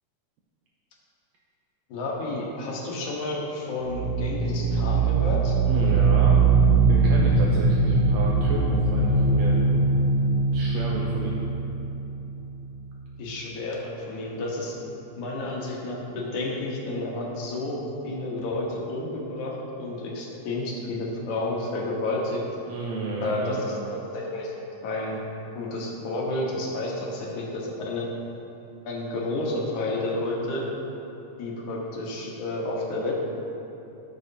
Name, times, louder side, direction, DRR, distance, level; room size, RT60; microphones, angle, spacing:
voice 1, 1.9-5.6 13.2-14.8 15.2-22.4 23.2-24.5 24.8-25.2 25.6-28.1 28.9-30.7 31.4-33.1, left 2 dB, 70° left, -3 dB, 2.6 m, -31 dB
sound 1, 3.8-12.5, right 3 dB, 45° right, 0.8 m, -21 dB
voice 2, 5.7-6.5 6.9-10.0 10.5-11.4 22.7-23.6, right 4 dB, 75° right, -3 dB, 1.6 m, -32 dB
15.5 x 6.3 x 2.8 m, 3.0 s
omnidirectional pair, 3.7 m